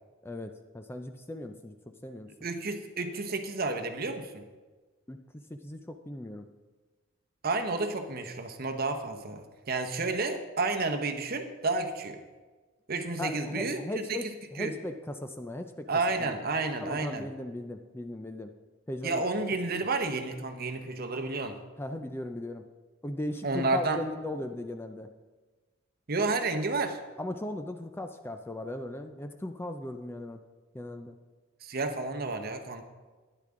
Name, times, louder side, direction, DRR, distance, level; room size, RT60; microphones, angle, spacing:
voice 1, 0.2-2.3 5.1-6.5 13.2-15.9 16.2-16.3 16.8-18.5 18.9-19.2 21.8-22.6 23.0-25.1 27.2-30.4 30.7-31.2, left 1 dB, 10° left, 6 dB, 0.4 m, -38 dB
voice 2, 2.4-4.5 7.4-12.2 12.9-13.8 14.1-14.2 14.6-14.7 15.9-17.3 19.0-21.6 23.4-24.0 26.1-27.0 31.6-32.8, right 3 dB, 50° right, 6 dB, 0.9 m, -31 dB
12.0 x 10.0 x 3.7 m, 1.3 s
head